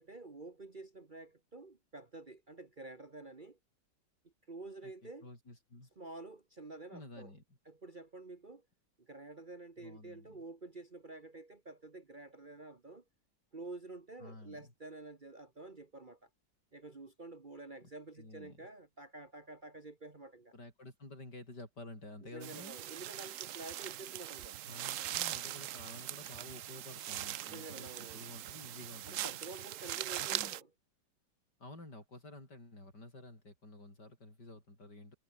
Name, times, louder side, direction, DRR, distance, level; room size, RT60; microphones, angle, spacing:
voice 1, 0.0-3.6 4.2-5.3 6.0-7.4 7.6-8.6 9.0-13.0 13.5-16.3 16.7-20.5 22.2-24.6 27.4-28.3 29.1-30.7, right 2 dB, 30° right, 1.5 m, -49 dB
voice 2, 4.8-5.9 6.9-7.4 9.8-10.4 14.2-14.7 17.8-17.9 18.2-18.6 20.5-22.8 24.7-29.3 30.2-30.5 31.6-35.2, left 2 dB, 65° left, 8.5 m, -51 dB
sound 1, 22.4-30.6, right 13 dB, 75° right, 0.7 m, -41 dB
omnidirectional pair, 2.0 m